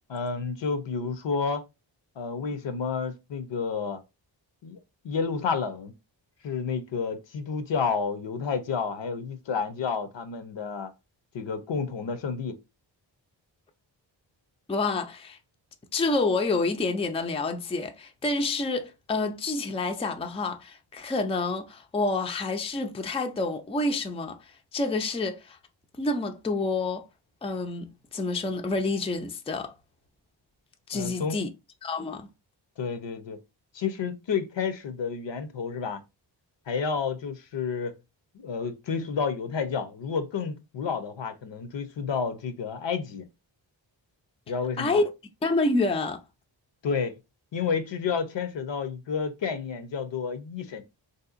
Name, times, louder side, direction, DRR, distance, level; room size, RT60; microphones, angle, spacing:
voice 1, 0.1-1.6 2.2-4.0 4.6-4.8 5.0-5.9 6.4-10.9 11.3-12.6 30.9-31.4 32.8-33.4 33.7-36.0 36.7-38.0 38.3-43.3 44.5-45.0 46.8-47.2 47.5-50.8, left 5 dB, 65° left, 0.7 m, -30 dB
voice 2, 14.7-15.4 15.9-25.6 26.0-27.1 27.4-29.7 30.9-31.5 31.8-32.3 44.8-45.1 45.4-46.2, left 3 dB, 15° left, 0.4 m, -28 dB
3.3 x 2.8 x 2.4 m
cardioid pair, 60°, 47 cm